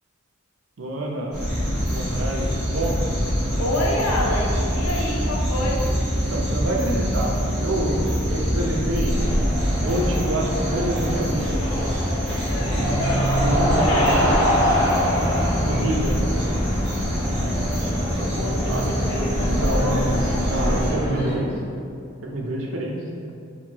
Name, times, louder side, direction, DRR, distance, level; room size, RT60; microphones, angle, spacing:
voice 1, 0.8-1.5 1.9-3.0 6.3-8.0 8.3-9.2 9.7-11.6 13.4-14.4 15.6-16.2 17.4-17.5 18.5-18.9 19.5-19.9 20.5-21.5 22.2-23.0, right 1 dB, 65° right, -1 dB, 0.5 m, -27 dB
sound 1, 1.3-20.9, equal, ahead, 1.2 m, -24 dB
voice 2, 3.6-5.9 12.4-13.1 13.8-14.3 16.0-16.1 18.1-20.3, left 1 dB, 75° left, -2 dB, 0.6 m, -28 dB
sound 2, 9.1-21.3, equal, 50° left, 0.9 m, -26 dB
4.3 x 2.6 x 2.8 m, 2.4 s
head